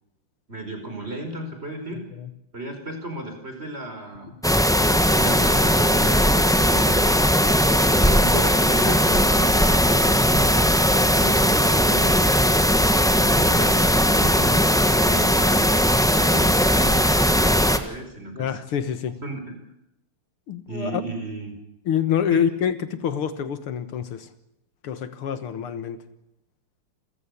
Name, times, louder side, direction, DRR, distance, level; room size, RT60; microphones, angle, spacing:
voice 1, 0.5-2.0 2.5-4.3 4.7-7.1 7.5-12.6 13.1-15.6 16.1-18.5 19.2-19.5 20.7-21.6 22.3-22.5, right 1 dB, 25° right, 6 dB, 5.3 m, -34 dB
sound 1, 4.4-17.8, equal, ahead, 0.9 m, -18 dB
voice 2, 18.4-19.1 20.5-21.0 21.9-24.3 24.8-26.0, left 8 dB, 75° left, 12 dB, 2.2 m, -26 dB
28.5 x 15.0 x 8.4 m, 0.84 s
omnidirectional pair, 2.4 m